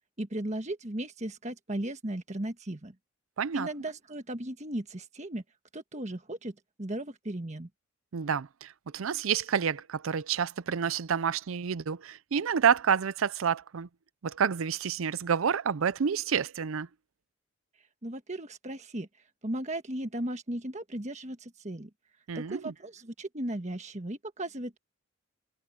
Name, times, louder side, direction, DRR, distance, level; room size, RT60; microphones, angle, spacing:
voice 1, 0.2-2.9 3.5-5.4 5.7-7.7 18.0-19.1 19.4-21.9 22.3-24.8, right 1 dB, 35° right, 1.6 m, -36 dB
voice 2, 3.4-3.7 8.1-13.9 14.2-16.9 22.3-22.7, right 7 dB, 75° right, 0.5 m, -29 dB
head